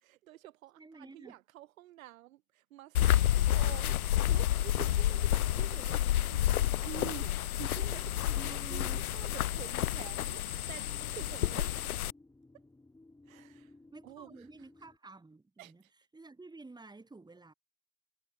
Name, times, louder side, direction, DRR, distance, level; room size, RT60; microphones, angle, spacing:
voice 1, 0.0-11.9 13.2-13.8 14.0-14.9 15.6-15.9, right 15 dB, 70° right, 1.4 m, -49 dB
voice 2, 0.8-1.3 8.4-9.0 13.9-15.8 16.1-17.5, right 3 dB, 10° right, 3.3 m, -50 dB
sound 1, 2.9-12.1, left 12 dB, 90° left, 0.5 m, -30 dB
sound 2, 9.7-15.0, left 2 dB, 5° left, 3.1 m, -59 dB
hypercardioid pair, 85°, 42 cm